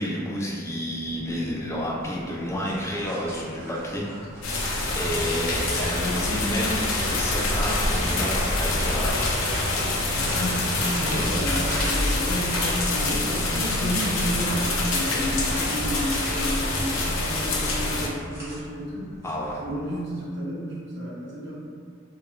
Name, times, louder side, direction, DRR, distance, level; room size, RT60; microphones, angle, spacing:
voice 1, 0.0-4.1 4.9-9.3 19.2-19.6, equal, 15° left, -4 dB, 0.3 m, -30 dB
sound 1, 1.0-20.2, right 2 dB, 85° right, 0.3 m, -45 dB
sound 2, 2.0-19.6, equal, 15° right, 0.8 m, -41 dB
sound 3, 4.4-18.1, left 2 dB, 80° left, 0.4 m, -26 dB
voice 2, 10.1-19.1 19.6-21.5, equal, 60° right, -7 dB, 0.8 m, -31 dB
2.8 x 2.0 x 2.3 m, 2.2 s
head